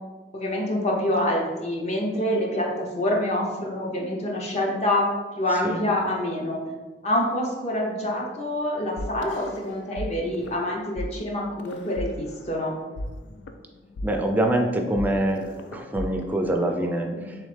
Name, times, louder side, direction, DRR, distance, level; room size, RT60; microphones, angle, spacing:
voice 1, 0.3-5.1 5.4-6.6 7.0-12.8 17.1-17.2, left 1 dB, 40° left, -1 dB, 0.7 m, -26 dB
sound 1, 9.0-10.1 10.3-10.6 11.0-11.1 11.6-12.6 13.0-17.0, left 1 dB, 90° left, 0.3 m, -36 dB
voice 2, 14.0-17.4, right 1 dB, 10° right, 2 dB, 0.3 m, -25 dB
3.5 x 3.1 x 3.3 m, 1.3 s
head